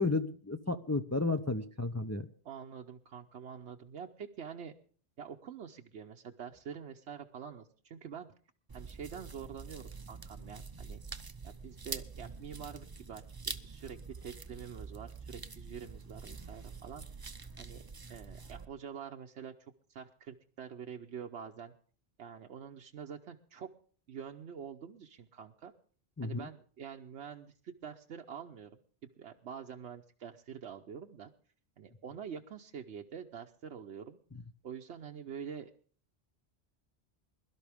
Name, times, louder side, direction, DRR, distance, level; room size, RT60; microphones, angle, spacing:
voice 1, 0.0-2.3 26.2-26.5, left 3 dB, 20° left, 7 dB, 0.5 m, -32 dB
voice 2, 2.4-4.7 5.2-8.3 8.7-11.0 11.4-17.3 17.6-17.8 18.1-19.5 19.9-21.7 22.2-23.7 24.1-25.7 26.2-28.7 29.0-31.3 31.8-34.2 34.6-35.7, right 7 dB, 90° right, 3 dB, 1.1 m, -46 dB
sound 1, 8.7-18.6, right 4 dB, 25° right, 0.6 m, -46 dB
22.0 x 12.5 x 3.5 m, 0.43 s
omnidirectional pair, 1.1 m